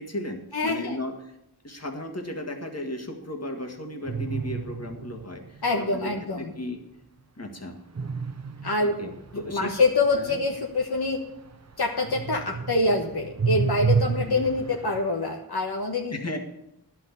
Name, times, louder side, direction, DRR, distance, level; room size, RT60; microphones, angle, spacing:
voice 1, 0.0-1.3 1.6-6.8 7.4-7.8 8.8-9.7 10.1-10.4 14.2-14.5 16.1-16.4, left 1 dB, 40° left, 3 dB, 1.9 m, -35 dB
voice 2, 0.5-1.0 5.6-6.5 8.6-11.2 11.8-16.1, left 3 dB, 70° left, 1 dB, 1.3 m, -25 dB
sound 1, 4.0-5.7 7.9-11.7 12.0-15.0, right 5 dB, 40° right, 0.9 m, -30 dB
11.0 x 6.1 x 8.3 m, 0.82 s
wide cardioid pair, 45°, 40 cm